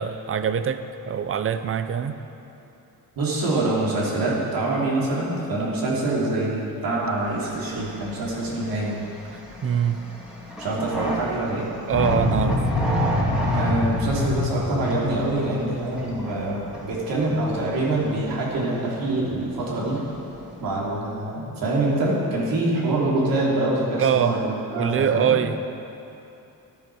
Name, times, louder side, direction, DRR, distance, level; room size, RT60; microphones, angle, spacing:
voice 1, 0.0-2.2 9.3-10.0 11.9-12.7 24.0-24.4 24.8-25.7, right 8 dB, 35° right, 11 dB, 0.6 m, -24 dB
voice 2, 3.2-9.0 10.6-11.7 13.5-20.0 20.6-25.4, right 2 dB, 70° right, -5 dB, 3.2 m, -25 dB
sound 1, 7.1-21.0, right 1 dB, ahead, 2.3 m, -34 dB
sound 2, 11.9-16.7, left 2 dB, 50° left, 2.4 m, -26 dB
14.0 x 10.5 x 4.8 m, 2.8 s
cardioid pair, 125°, 36 cm